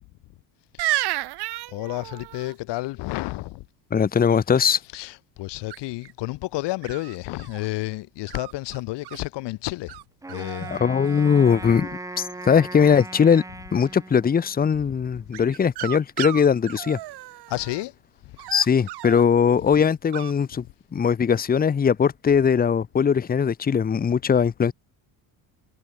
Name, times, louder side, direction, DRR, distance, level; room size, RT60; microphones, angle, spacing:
sound 1, 0.8-2.5 5.7-6.1 6.8-7.7 8.3-9.2 9.9-10.0 10.3-10.8 11.0-11.6 15.3-17.8 18.4-19.2 20.1-20.3, right 17 dB, 65° right, 4.4 m, -33 dB
voice 1, 1.7-3.7 4.9-10.0 10.3-10.8 11.6-11.9 15.1-15.3 17.5-18.0 18.2-18.5 19.6-19.7, left 19 dB, 75° left, 2.3 m, -31 dB
voice 2, 3.9-4.8 10.7-11.9 12.2-13.4 13.7-17.0 18.5-20.6 20.9-24.7, left 7 dB, 20° left, 1.6 m, -20 dB
Wind instrument woodwind instrument, 10.2-14.6, right 2 dB, 5° right, 2.2 m, -38 dB
cardioid pair, 180°, 42 cm